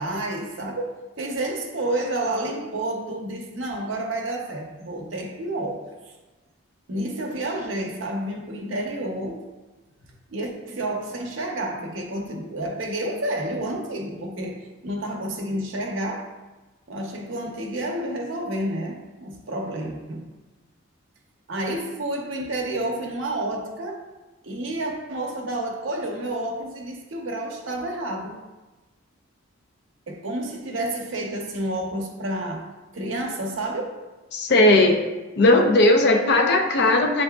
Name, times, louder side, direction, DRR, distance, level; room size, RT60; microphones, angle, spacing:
voice 1, 0.0-5.9 6.9-9.5 10.3-16.3 16.9-20.3 21.5-24.0 24.4-28.4 30.1-34.0, right 1 dB, 60° right, 0.6 m, -30 dB
voice 2, 34.3-35.0 35.4-37.2, left 2 dB, 50° left, 0.5 m, -17 dB
7.3 x 2.6 x 2.2 m
head